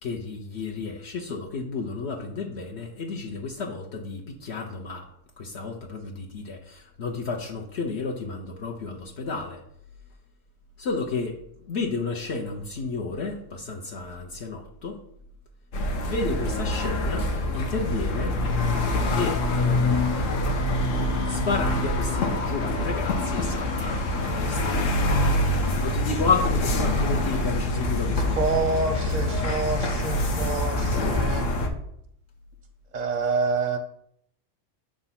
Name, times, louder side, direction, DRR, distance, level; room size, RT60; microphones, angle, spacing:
voice 1, 0.0-5.1 5.4-9.6 10.8-11.4 11.6-15.0 16.0-17.3 17.5-18.3 19.1-20.5 21.2-24.7 25.5-28.5, left 4 dB, 65° left, 0 dB, 1.0 m, -31 dB
sound 1, 15.7-31.7, left 1 dB, 85° left, 1.2 m, -25 dB
voice 2, 28.3-31.5 32.9-33.8, right 4 dB, 45° right, 7 dB, 0.6 m, -27 dB
6.0 x 3.9 x 5.7 m, 0.71 s
omnidirectional pair, 1.3 m